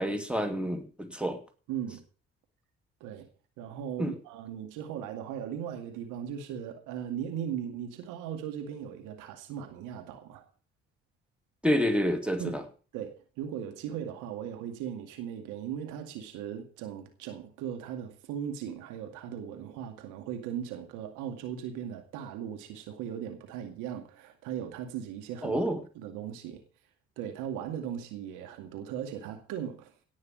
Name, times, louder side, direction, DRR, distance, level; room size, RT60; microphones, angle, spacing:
voice 1, 0.0-1.4 4.0-4.1 11.6-12.6 25.4-25.8, equal, 5° right, 2.7 m, -28 dB
voice 2, 1.7-2.0 3.0-3.3 3.6-10.4 12.4-12.6 12.9-25.6 26.0-26.6 27.2-29.9, right 9 dB, 70° right, 2.2 m, -38 dB
17.5 x 6.3 x 7.4 m
hypercardioid pair, 45°, 32 cm